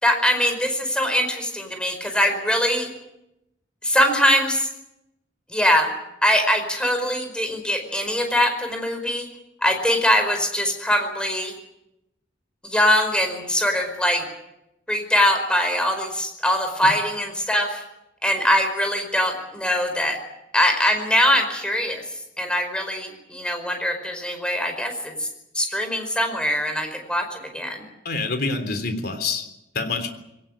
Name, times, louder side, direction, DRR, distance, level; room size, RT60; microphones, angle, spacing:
voice 1, 0.0-2.9 3.8-4.7 5.5-5.9 6.2-9.3 9.6-11.5 12.6-14.2 14.9-17.8 18.2-20.2 20.5-22.0 22.4-25.3 25.5-27.9, equal, 5° left, 5 dB, 4.8 m, -22 dB
voice 2, 28.1-29.4 29.7-30.1, left 3 dB, 55° left, 7 dB, 3.5 m, -26 dB
22.0 x 18.5 x 8.9 m, 0.88 s
head